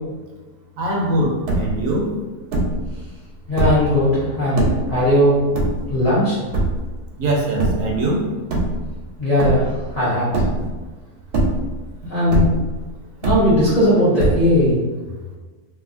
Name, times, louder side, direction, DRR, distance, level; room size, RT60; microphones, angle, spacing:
voice 1, 0.8-1.3 1.6-2.1 7.2-8.2, right 1 dB, 70° right, -1 dB, 0.9 m, -21 dB
sound 1, 1.0-1.1 1.3-1.9 2.5-2.9 3.4-4.0 4.6-5.0 5.5-6.1 6.5-7.0 7.6-8.0 8.4-9.1 9.4-9.9 10.3-10.9 11.2-11.9 12.3-12.8 13.2-13.8 14.2-14.7, right 2 dB, 90° right, 1.1 m, -21 dB
voice 2, 3.5-5.4 5.9-6.4 9.2-9.6 9.9-10.3 12.1-12.5 13.2-14.8, left 1 dB, 40° left, -11 dB, 0.6 m, -17 dB
2.7 x 2.4 x 2.5 m, 1.3 s
omnidirectional pair, 1.6 m